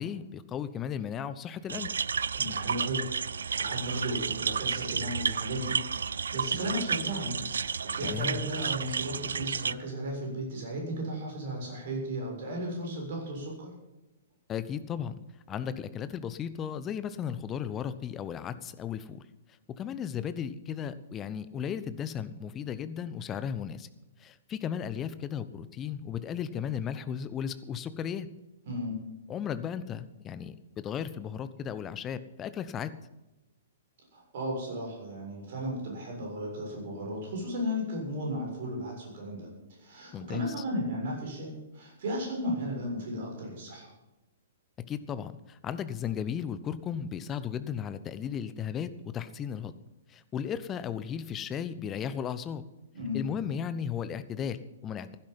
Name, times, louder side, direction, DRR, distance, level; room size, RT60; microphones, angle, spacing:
voice 1, 0.0-1.9 8.0-8.5 14.5-15.1 15.5-19.2 19.8-23.9 24.2-28.3 29.3-32.9 40.1-40.5 44.9-48.9 49.1-49.7 50.1-52.6 53.1-55.2, left 8 dB, 20° left, 13 dB, 0.9 m, -35 dB
sound 1, 1.7-9.7, right 6 dB, 65° right, 0.4 m, -32 dB
voice 2, 2.3-3.0 3.3-5.8 6.0-13.7 28.7-29.0 34.1-39.5 39.8-43.9 52.9-53.3, equal, 50° right, 0 dB, 6.9 m, -35 dB
15.5 x 12.0 x 5.6 m, 1.0 s
figure-of-eight pair, 115°, 0 cm